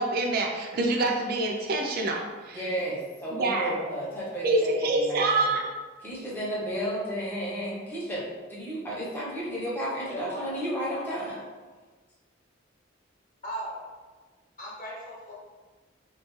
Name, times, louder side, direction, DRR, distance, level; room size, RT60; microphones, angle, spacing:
voice 1, 0.0-2.6 3.3-3.7 4.4-5.7, right 2 dB, 50° right, 1 dB, 0.3 m, -26 dB
voice 2, 2.5-5.2 6.0-11.4, equal, 10° left, -7 dB, 0.7 m, -33 dB
voice 3, 10.1-10.5 13.4-13.9 14.6-15.3, equal, 40° left, -5 dB, 0.9 m, -37 dB
3.5 x 2.3 x 3.0 m, 1.4 s
head